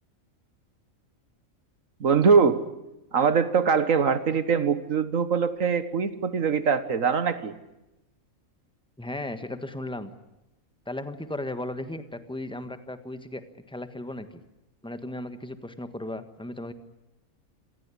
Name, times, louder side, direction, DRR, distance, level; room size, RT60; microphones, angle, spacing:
voice 1, 2.0-2.6 3.1-7.5, right 6 dB, 75° right, 12 dB, 1.7 m, -22 dB
voice 2, 9.0-10.1 10.8-14.4 14.8-16.7, left 1 dB, 5° left, 9 dB, 1.4 m, -36 dB
27.0 x 17.5 x 10.0 m, 0.95 s
omnidirectional pair, 1.4 m